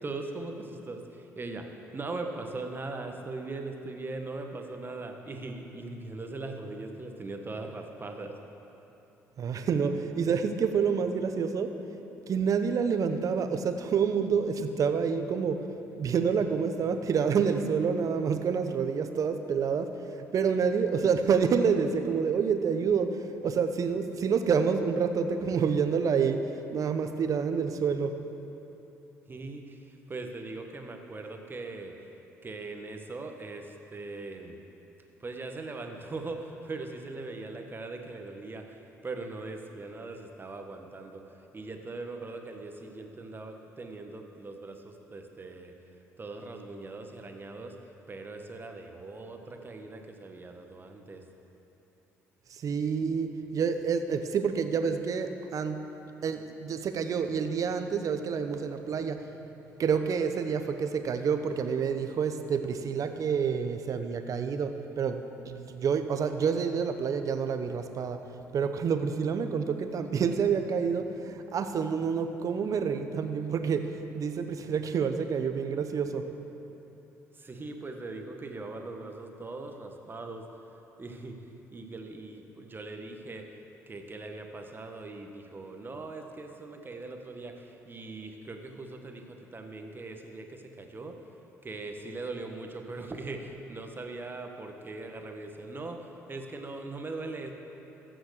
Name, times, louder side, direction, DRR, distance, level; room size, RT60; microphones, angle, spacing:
voice 1, 0.0-8.4 29.3-32.1 32.4-34.6 35.2-41.2 41.5-45.7 46.2-47.8 48.1-51.2 77.3-80.5 81.0-81.4 81.7-83.5 83.9-91.2 91.6-97.5, right 3 dB, 30° right, 4 dB, 1.4 m, -40 dB
voice 2, 9.4-11.7 12.3-15.7 16.0-28.2 52.5-55.8 56.2-59.2 59.8-65.2 65.5-68.2 68.5-76.3, right 6 dB, 55° right, 8 dB, 0.9 m, -28 dB
14.5 x 6.3 x 6.6 m, 3.0 s
hypercardioid pair, 55°, 7 cm